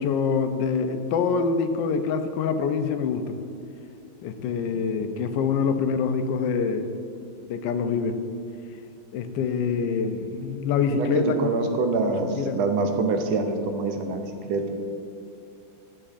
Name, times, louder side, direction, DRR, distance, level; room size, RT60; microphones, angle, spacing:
voice 1, 0.0-3.3 4.2-6.9 7.5-8.2 9.1-11.5 12.3-12.6, left 5 dB, 75° left, 7 dB, 1.2 m, -25 dB
voice 2, 4.6-5.2 10.9-14.7, right 3 dB, 85° right, 5 dB, 1.5 m, -26 dB
11.0 x 7.2 x 2.5 m, 2.6 s
omnidirectional pair, 2.2 m